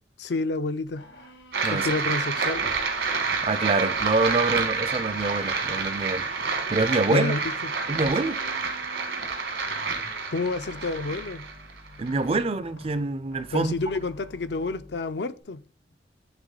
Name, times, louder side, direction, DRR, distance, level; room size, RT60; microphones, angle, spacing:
voice 1, 0.2-1.0 1.7-2.6 7.1-7.4 10.3-11.4 13.5-15.6, left 3 dB, 70° left, 0.5 m, -29 dB
sound 1, 0.9-15.4, left 2 dB, 85° left, 2.0 m, -47 dB
sound 2, 1.5-12.4, right 4 dB, 75° right, 1.5 m, -29 dB
voice 2, 3.4-6.3 6.7-7.3 7.9-8.4 12.0-13.7, right 3 dB, 30° right, 0.4 m, -25 dB
8.1 x 3.5 x 3.9 m
head